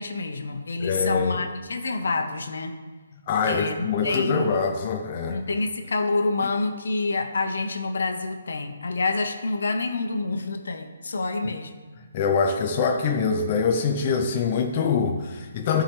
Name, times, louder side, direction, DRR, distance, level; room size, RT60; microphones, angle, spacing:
voice 1, 0.0-2.8 3.5-4.6 5.3-11.8, left 3 dB, 70° left, 5 dB, 1.0 m, -27 dB
voice 2, 0.8-1.4 3.3-5.4 11.4-11.5 12.1-15.8, left 5 dB, 25° left, 2 dB, 0.5 m, -24 dB
14.5 x 5.0 x 3.3 m, 1.3 s
hypercardioid pair, 175°, 0 cm